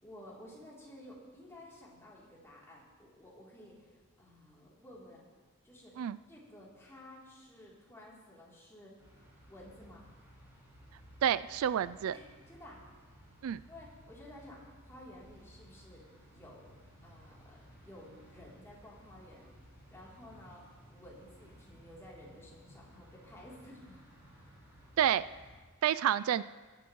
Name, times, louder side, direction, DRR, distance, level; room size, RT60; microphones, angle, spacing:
voice 1, 0.0-5.3 5.6-9.0 9.5-10.1 12.1-12.8 13.7-16.0 16.3-16.7 17.0-19.5 19.9-20.6 20.9-24.0, left 1 dB, 15° left, -6 dB, 3.2 m, -53 dB
sound 1, 9.0-25.6, equal, 15° right, 5.1 m, -58 dB
voice 2, 11.2-12.2 13.4-13.6 25.0-25.3 25.8-26.4, right 10 dB, 80° right, 17 dB, 0.3 m, -29 dB
20.0 x 12.0 x 3.1 m, 1.4 s
head